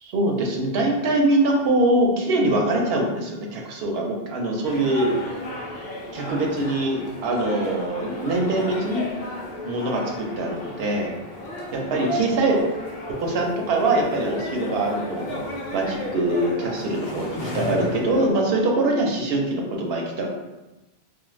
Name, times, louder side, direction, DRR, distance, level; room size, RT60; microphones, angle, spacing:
voice 1, 0.0-5.2 6.1-9.1 9.6-11.1 11.7-12.6 13.1-15.4 15.7-20.3, right 2 dB, 75° right, 0 dB, 0.8 m, -23 dB
sound 1, 4.6-18.3, left 1 dB, 75° left, 0.8 m, -34 dB
2.4 x 2.1 x 3.0 m, 1.0 s
omnidirectional pair, 1.1 m